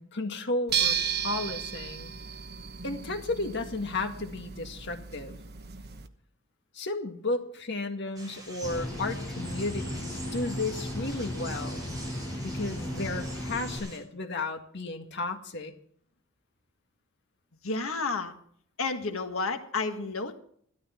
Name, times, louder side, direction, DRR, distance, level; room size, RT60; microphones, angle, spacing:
voice 1, 0.0-2.1 2.8-5.4 6.7-12.0 12.4-15.7, left 2 dB, 55° left, 5 dB, 1.9 m, -33 dB
sound 1, 0.7-6.1, right 8 dB, 50° right, 1.2 m, -34 dB
sound 2, 8.2-14.0, right 2 dB, 20° right, 6.2 m, -45 dB
sound 3, 8.6-13.8, left 1 dB, 10° left, 6.4 m, -35 dB
voice 2, 17.6-18.3 18.8-20.4, left 3 dB, 80° left, 6 dB, 1.8 m, -31 dB
16.0 x 13.5 x 4.5 m, 0.62 s
head